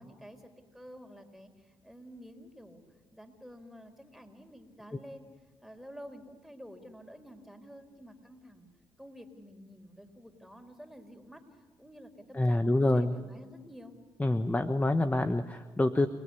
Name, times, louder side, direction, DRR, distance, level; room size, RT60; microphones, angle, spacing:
voice 1, 0.0-2.8 3.1-5.3 5.6-8.7 9.0-11.4 11.8-14.0, equal, ahead, 4 dB, 4.4 m, -50 dB
voice 2, 12.3-13.2 14.2-16.1, left 2 dB, 15° left, 9 dB, 1.2 m, -26 dB
29.0 x 19.5 x 9.8 m, 1.3 s
cardioid pair, 80°, 9 cm